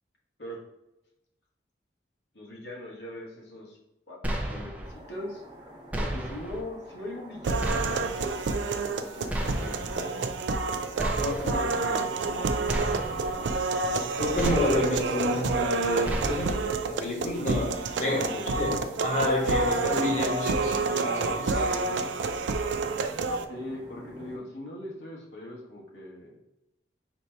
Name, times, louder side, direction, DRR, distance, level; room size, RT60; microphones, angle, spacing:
voice 1, 2.3-3.8 4.1-5.4 5.9-10.4 11.1-13.6 17.9-18.5 23.5-26.3, left 1 dB, 75° left, -3 dB, 1.2 m, -41 dB
sound 1, 4.2-4.9 5.9-6.6 7.6-8.3 9.3-10.0 11.0-11.7 12.7-13.4 14.4-15.1 16.0-16.7, right 1 dB, 10° right, 0.5 m, -32 dB
sound 2, 4.8-24.4, right 1 dB, 25° right, 0.9 m, -49 dB
sound 3, 7.4-23.4, right 3 dB, 85° right, 0.4 m, -29 dB
voice 2, 11.2-11.6 14.2-18.2 18.6-22.1, left 1 dB, 40° left, -1 dB, 1.1 m, -30 dB
4.2 x 2.8 x 4.4 m, 0.93 s
head